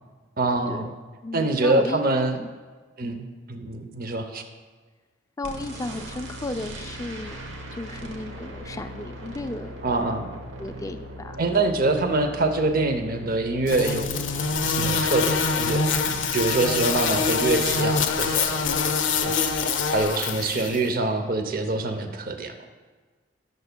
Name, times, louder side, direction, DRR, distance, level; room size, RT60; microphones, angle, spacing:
voice 1, 0.4-0.9 1.3-2.4 3.0-4.4 9.8-10.3 11.4-18.6 19.2-22.6, right 2 dB, 45° right, 7 dB, 0.7 m, -25 dB
voice 2, 1.2-2.0 3.0-3.3 5.4-7.4 7.7-9.8 10.6-11.7, left 2 dB, 15° left, 7 dB, 0.3 m, -34 dB
sound 1, 5.4-18.8, right 1 dB, 75° right, 1.2 m, -40 dB
sound 2, 13.7-20.8, left 5 dB, 75° left, 0.6 m, -25 dB
18.0 x 6.7 x 2.2 m, 1.4 s
head